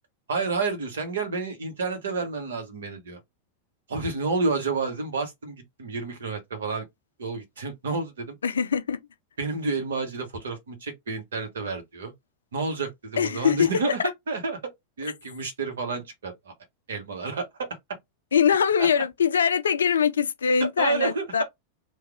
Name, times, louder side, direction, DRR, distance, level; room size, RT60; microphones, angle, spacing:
voice 1, 0.3-3.2 3.9-6.9 7.2-8.3 9.4-12.1 12.5-14.0 14.3-16.3 16.9-17.5 18.8-18.9 20.8-21.4, right 4 dB, 65° right, 1.1 m, -30 dB
voice 2, 8.4-9.0 13.2-13.9 18.3-21.4, left 7 dB, 70° left, 0.4 m, -23 dB
3.1 x 2.3 x 3.5 m
figure-of-eight pair, 90°, 0 cm